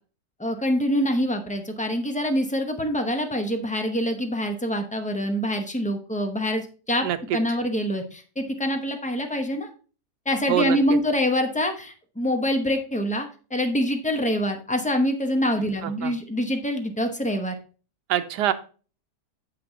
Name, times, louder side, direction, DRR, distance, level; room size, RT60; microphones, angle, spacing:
voice 1, 0.4-7.1 7.3-9.7 10.3-17.5, equal, 5° left, 5 dB, 0.6 m, -25 dB
voice 2, 7.0-7.4 10.5-10.8 15.8-16.1 18.1-18.5, right 11 dB, 85° right, 9 dB, 1.3 m, -24 dB
7.6 x 5.9 x 3.8 m, 0.37 s
omnidirectional pair, 1.7 m